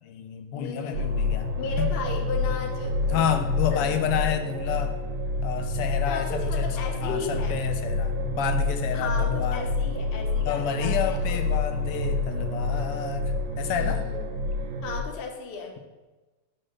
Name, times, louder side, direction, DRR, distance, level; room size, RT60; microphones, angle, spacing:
voice 1, 0.0-1.5 1.8-1.9 3.1-5.0 5.4-6.7 7.0-9.6 10.5-14.1, left 8 dB, 85° left, 8 dB, 1.7 m, -30 dB
voice 2, 0.5-1.0 1.6-3.2 3.7-3.9 6.1-7.6 8.9-11.4 13.7-14.2 14.8-15.7, left 4 dB, 50° left, 2 dB, 0.6 m, -35 dB
sound 1, 0.9-15.0, left 3 dB, 75° right, 0.9 m, -28 dB
6.6 x 4.9 x 6.2 m, 1.2 s
omnidirectional pair, 2.4 m